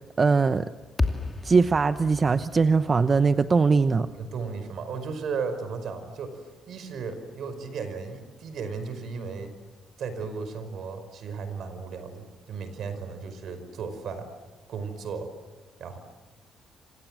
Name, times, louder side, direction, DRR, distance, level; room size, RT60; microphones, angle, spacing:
voice 1, 0.2-0.6 1.4-4.1, right 4 dB, 35° right, 11 dB, 0.8 m, -21 dB
sound 1, 1.0-5.3, left 3 dB, 20° left, 2.7 m, -34 dB
voice 2, 4.1-9.5 10.0-14.3 14.7-15.3 15.8-16.0, right 5 dB, 70° right, 10 dB, 5.2 m, -35 dB
29.5 x 26.5 x 7.6 m, 1.2 s
cardioid pair, 90°, 0 cm